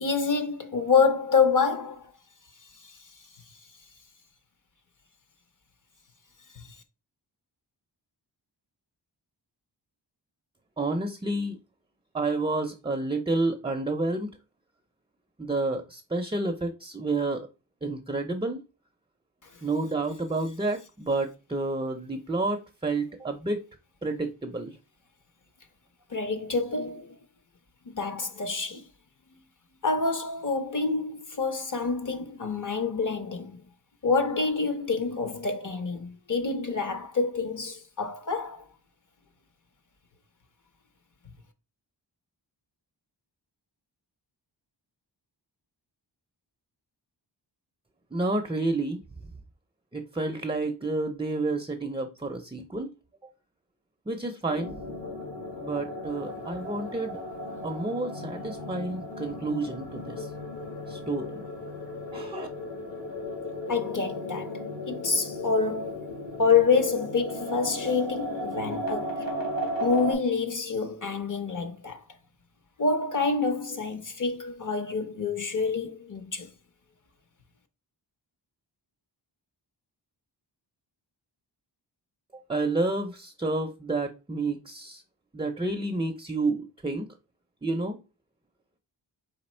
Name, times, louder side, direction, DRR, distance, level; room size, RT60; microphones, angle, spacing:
voice 1, 0.0-2.1 26.1-27.1 27.9-28.8 29.8-33.6 34.0-38.6 63.7-64.5 64.9-66.0 66.4-69.2 69.8-72.0 72.8-76.5, left 4 dB, 45° left, 0.7 m, -27 dB
voice 2, 10.8-11.6 12.1-14.3 15.4-17.5 17.8-18.6 19.6-23.6 24.0-24.8 48.1-49.0 49.9-52.9 54.1-54.7 55.6-57.2 57.6-60.3 60.9-61.4 62.1-62.5 82.5-85.0 85.3-87.1 87.6-88.0, right 2 dB, 15° right, 0.4 m, -30 dB
sound 1, 54.5-70.1, left 1 dB, 75° left, 2.1 m, -36 dB
4.2 x 2.7 x 4.3 m
wide cardioid pair, 105°, 44 cm